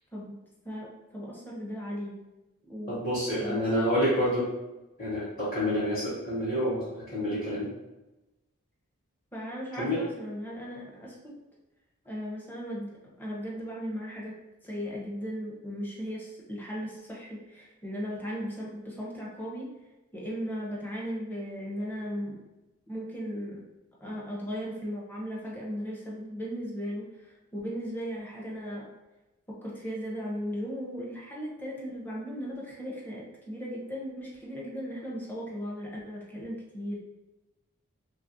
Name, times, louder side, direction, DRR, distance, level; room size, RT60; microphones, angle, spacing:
voice 1, 0.6-2.2 2.6-3.1 3.4-3.9 9.3-11.1 12.0-14.3 14.6-19.7 20.1-22.4 22.9-23.6 24.0-28.9 29.5-37.0, equal, 10° left, -4 dB, 0.5 m, -37 dB
voice 2, 2.9-4.5 5.0-7.7 9.8-10.0, equal, 35° left, -10 dB, 0.8 m, -28 dB
3.1 x 2.3 x 2.6 m, 1.0 s
head